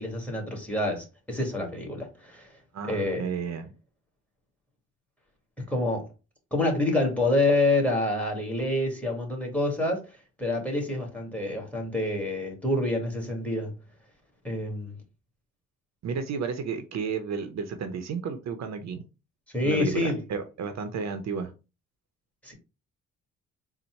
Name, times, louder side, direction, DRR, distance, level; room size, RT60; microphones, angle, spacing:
voice 1, 0.0-2.5 2.9-3.3 5.7-6.1 6.5-10.1 10.4-13.7 14.4-15.0 19.5-20.2 22.4-22.5, left 2 dB, 5° left, 1.8 m, -27 dB
voice 2, 2.7-3.7 16.0-19.0 19.6-21.5, right 6 dB, 60° right, 0.7 m, -32 dB
4.0 x 2.2 x 4.4 m
cardioid pair, 90°, 30 cm